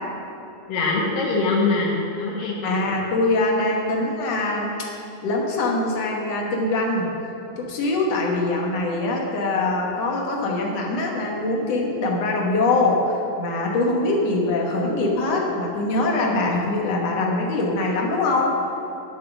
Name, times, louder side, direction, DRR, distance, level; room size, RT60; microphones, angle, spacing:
voice 1, 0.7-2.8, left 3 dB, 85° left, -4 dB, 3.3 m, -23 dB
voice 2, 2.6-4.9 5.2-7.1 7.6-18.5, left 2 dB, 60° left, -1 dB, 2.2 m, -23 dB
11.0 x 8.3 x 6.1 m, 2.9 s
omnidirectional pair, 3.8 m